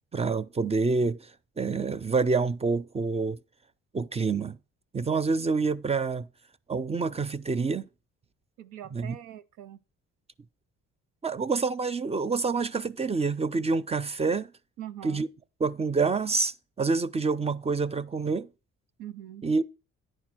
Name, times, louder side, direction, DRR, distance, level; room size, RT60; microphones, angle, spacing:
voice 1, 0.1-1.3 1.6-3.4 3.9-4.6 4.9-6.3 6.7-7.8 8.9-9.2 11.2-14.5 15.0-15.3 15.6-18.5 19.4-19.6, right 4 dB, 20° right, 0.4 m, -27 dB
voice 2, 8.6-9.8 14.8-15.2 19.0-19.4, right 11 dB, 90° right, 0.7 m, -42 dB
9.7 x 4.7 x 6.0 m
cardioid pair, 90°, 30 cm